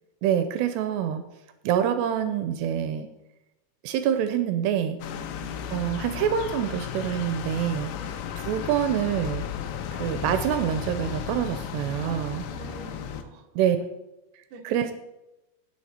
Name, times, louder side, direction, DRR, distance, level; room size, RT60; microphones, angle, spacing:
voice 1, 0.2-1.2 1.6-3.1 3.8-5.0 5.7-7.9 8.5-9.5 9.9-12.4 13.6-13.8 14.6-14.9, right 9 dB, 80° right, 9 dB, 2.8 m, -26 dB
sound 1, 5.0-13.2, left 8 dB, 85° left, 3.1 m, -34 dB
voice 2, 5.1-5.8 7.9-8.2 12.1-13.5 14.5-14.8, right 6 dB, 65° right, 2 dB, 2.3 m, -45 dB
17.5 x 6.6 x 4.3 m, 0.97 s
omnidirectional pair, 4.9 m